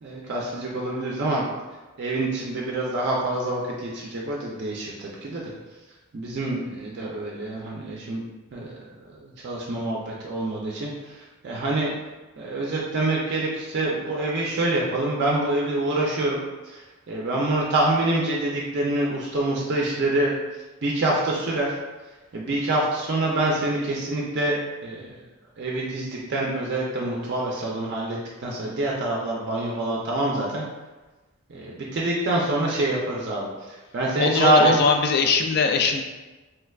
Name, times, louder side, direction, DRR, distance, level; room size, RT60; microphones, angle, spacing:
voice 1, 0.0-1.4 2.0-5.5 6.1-8.2 8.5-8.8 9.2-11.9 12.4-20.3 20.8-21.7 22.3-24.6 24.8-25.2 25.6-30.6 31.5-34.8, right 2 dB, 50° right, -3 dB, 0.4 m, -26 dB
voice 2, 34.2-36.0, left 5 dB, 50° left, 5 dB, 0.3 m, -21 dB
3.3 x 3.2 x 2.3 m, 1.2 s
head